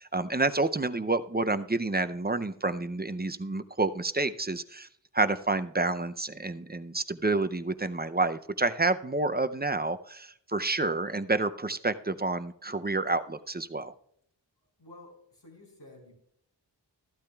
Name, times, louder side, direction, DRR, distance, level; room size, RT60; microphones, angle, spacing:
voice 1, 0.0-4.9 5.1-13.9, right 3 dB, 25° right, 11 dB, 0.5 m, -29 dB
voice 2, 14.8-16.1, left 2 dB, 70° left, 0 dB, 4.0 m, -51 dB
15.0 x 12.0 x 2.3 m, 0.68 s
wide cardioid pair, 50°, 43 cm